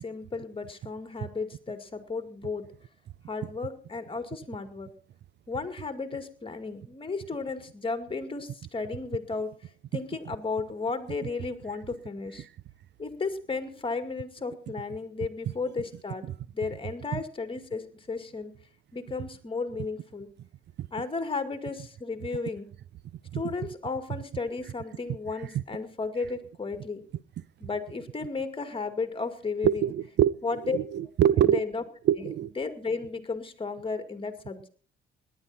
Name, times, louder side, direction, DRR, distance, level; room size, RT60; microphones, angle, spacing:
voice 1, 0.0-2.7 3.3-4.9 5.5-12.5 13.0-16.3 16.5-18.5 18.9-20.3 20.9-22.7 23.3-27.0 27.6-29.9 30.4-30.8 31.5-31.8 32.2-32.3 32.6-34.7, left 4 dB, 25° left, 2.2 m, -34 dB
voice 2, 29.6-30.4 30.6-31.6 32.1-32.5, right 10 dB, 60° right, 0.5 m, -24 dB
18.0 x 11.0 x 4.3 m
cardioid pair, 90°, 20 cm